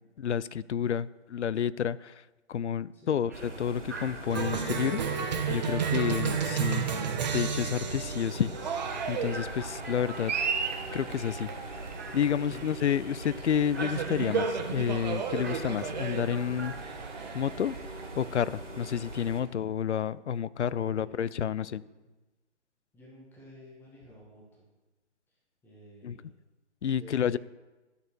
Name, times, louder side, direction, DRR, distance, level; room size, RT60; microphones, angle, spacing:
voice 1, 0.2-2.2 2.5-5.2 5.5-6.9 7.3-8.8 9.1-10.3 10.9-11.5 12.1-16.7 17.3-17.8 18.2-21.8 26.0-26.2 26.8-27.4, left 8 dB, 70° left, 19 dB, 0.5 m, -30 dB
voice 2, 2.9-3.3 12.3-12.7 20.7-22.1 22.9-24.4 25.6-26.3 27.0-27.2, equal, 5° left, -4 dB, 1.5 m, -52 dB
sound 1, 3.3-16.8, right 2 dB, 15° right, 0.4 m, -44 dB
sound 2, 3.3-19.4, right 1 dB, 80° right, 2.7 m, -43 dB
Cheering, 4.3-19.5, right 6 dB, 35° right, 0.9 m, -33 dB
13.0 x 6.7 x 4.6 m, 1.1 s
figure-of-eight pair, 135°, 37 cm